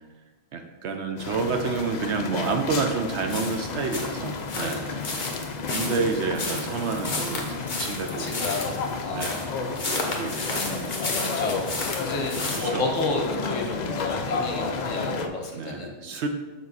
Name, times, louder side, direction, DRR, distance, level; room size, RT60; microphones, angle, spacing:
voice 1, 0.5-4.9 5.7-8.4 9.1-9.6 9.9-11.0 11.5-11.6 12.5-12.9 13.8-14.0 15.5-16.3, right 4 dB, 65° right, 5 dB, 0.8 m, -29 dB
sound 1, 1.2-15.3, left 4 dB, 85° left, 0.3 m, -32 dB
sound 2, 3.3-12.7, left 2 dB, 40° left, 1.1 m, -32 dB
voice 2, 4.6-4.9 8.2-8.7 9.0-9.5 11.2-15.9, left 2 dB, 65° left, 1 dB, 1.4 m, -31 dB
7.2 x 4.6 x 4.0 m, 1.3 s
omnidirectional pair, 1.4 m